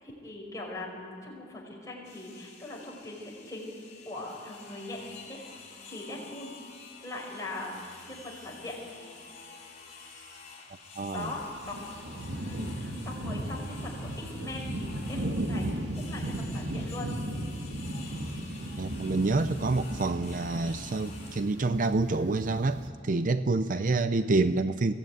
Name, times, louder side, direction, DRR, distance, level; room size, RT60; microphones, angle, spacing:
voice 1, 0.0-3.7 4.1-5.0 5.3-5.4 5.9-6.5 7.0-8.8 11.1-11.4 11.7-11.8 12.4-17.1 23.7-23.9, left 2 dB, 20° left, -2 dB, 5.4 m, -41 dB
sound 1, 2.0-21.4, left 4 dB, 40° left, 4.5 m, -49 dB
voice 2, 11.0-11.3 18.8-24.9, right 3 dB, 45° right, 11 dB, 0.6 m, -27 dB
sound 2, 11.2-22.9, right 1 dB, 75° right, 1.7 m, -36 dB
22.5 x 16.5 x 9.4 m, 2.1 s
head